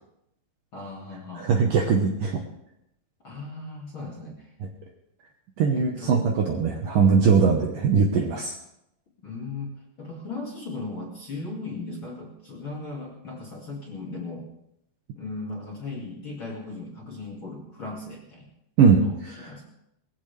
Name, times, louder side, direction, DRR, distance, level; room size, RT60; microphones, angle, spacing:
voice 1, 0.7-1.5 3.2-4.5 5.7-6.3 9.2-14.5 15.1-18.5 19.0-19.2 19.4-19.6, left 3 dB, 35° left, -3 dB, 2.3 m, -37 dB
voice 2, 1.4-2.4 5.6-8.5 18.8-19.5, right 5 dB, 65° right, 1 dB, 2.3 m, -21 dB
19.5 x 15.0 x 3.4 m, 0.80 s
omnidirectional pair, 5.2 m